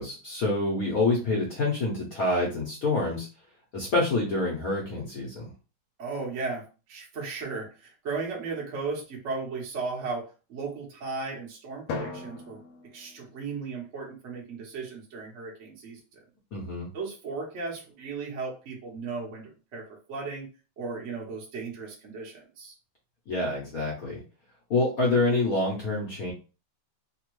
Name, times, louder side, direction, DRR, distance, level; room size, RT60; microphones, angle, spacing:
voice 1, 0.0-3.3 3.7-5.5 16.5-16.9 23.3-24.2 24.7-26.3, left 2 dB, 60° left, -3 dB, 0.9 m, -27 dB
voice 2, 6.0-12.6 12.9-16.0 16.9-20.5 20.8-22.7, right 4 dB, 50° right, -2 dB, 0.9 m, -36 dB
Drum, 11.9-14.2, left 3 dB, 80° left, 1.4 m, -39 dB
3.4 x 2.2 x 3.0 m, 0.33 s
omnidirectional pair, 2.4 m